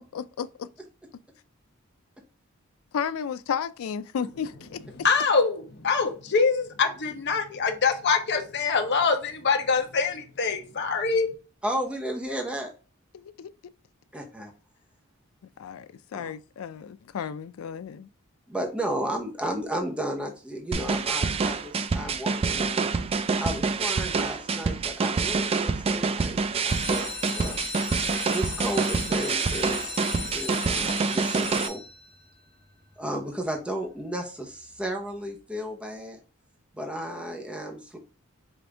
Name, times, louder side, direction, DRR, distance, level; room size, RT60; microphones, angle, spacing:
voice 1, 0.1-0.7 2.9-4.8 13.1-13.5 15.6-18.1, left 7 dB, 80° left, 0.4 m, -33 dB
voice 2, 5.0-11.3, left 5 dB, 55° left, 0.8 m, -24 dB
voice 3, 11.6-12.7 14.1-14.5 16.1-16.3 17.2-17.3 18.5-22.9 23.3-26.4 26.6-27.6 28.3-29.9 30.3-31.8 33.0-36.2 36.7-38.0, right 1 dB, 5° right, 0.7 m, -33 dB
sound 1, 20.7-31.7, right 4 dB, 30° right, 0.3 m, -27 dB
sound 2, 26.5-32.3 32.9-33.4 33.8-33.9 34.1-34.2 34.6-34.8, left 4 dB, 15° left, 1.2 m, -36 dB
5.1 x 2.6 x 3.3 m
head